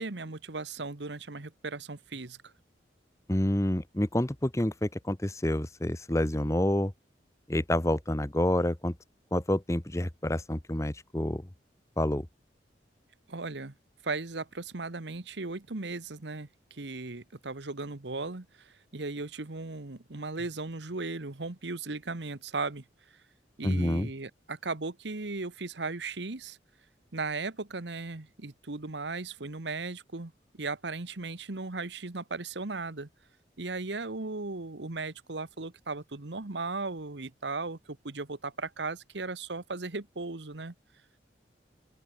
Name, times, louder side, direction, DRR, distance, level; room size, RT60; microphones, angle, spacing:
voice 1, 0.0-2.5 13.3-13.7 14.0-22.8 23.6-26.6 27.1-33.1 33.6-40.7, right 3 dB, 80° right, 1.4 m, -37 dB
voice 2, 3.3-6.9 7.5-8.9 9.3-11.5 12.0-12.3 23.6-24.1, left 1 dB, 15° left, 0.9 m, -28 dB
open air
head